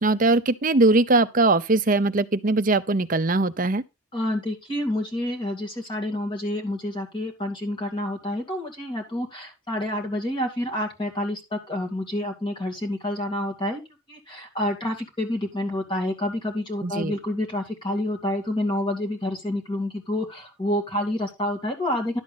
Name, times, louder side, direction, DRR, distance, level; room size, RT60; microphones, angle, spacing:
voice 1, 0.0-3.8 16.8-17.1, right 2 dB, 40° right, 0.7 m, -21 dB
voice 2, 4.1-13.8 14.1-22.2, left 1 dB, 25° left, 2.3 m, -28 dB
11.5 x 7.6 x 3.9 m
head